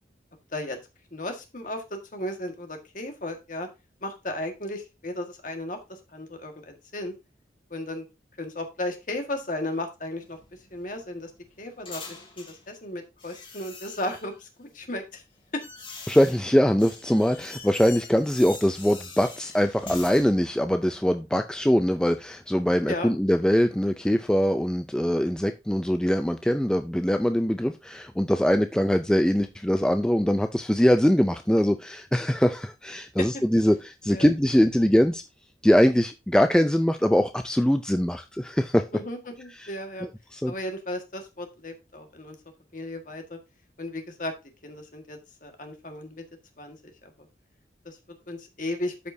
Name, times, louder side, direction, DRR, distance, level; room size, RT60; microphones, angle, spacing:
voice 1, 1.1-3.7 4.0-5.8 6.1-7.1 7.7-8.0 8.4-10.4 10.7-11.3 11.6-15.2 15.5-15.6 22.9-23.1 34.1-34.3 38.9-40.1 40.5-42.3 42.7-43.4 43.8-44.3 44.6-46.2 46.6-47.1 47.8-48.0 48.3-48.9, left 1 dB, 45° left, 1.6 m, -35 dB
sound 1, 10.2-12.6 13.2-14.4 15.1-20.3, left 4 dB, 30° left, 2.4 m, -43 dB
voice 2, 16.1-35.2 35.6-38.8 39.6-39.7 40.3-40.5, equal, 5° left, 0.4 m, -22 dB
12.5 x 5.2 x 2.7 m
head